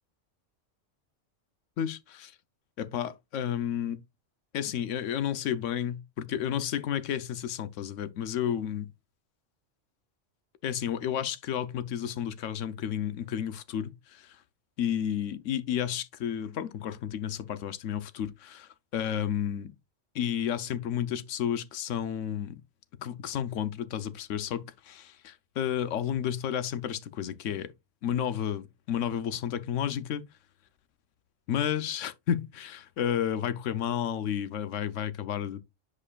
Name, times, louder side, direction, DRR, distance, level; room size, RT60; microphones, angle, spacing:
voice 1, 1.8-2.4 2.8-4.0 4.5-8.9 10.6-14.4 14.8-19.7 20.1-22.6 23.0-27.7 28.0-30.2 31.5-35.6, left 9 dB, 85° left, 1.0 m, -32 dB
8.5 x 4.9 x 2.3 m
omnidirectional pair, 1.3 m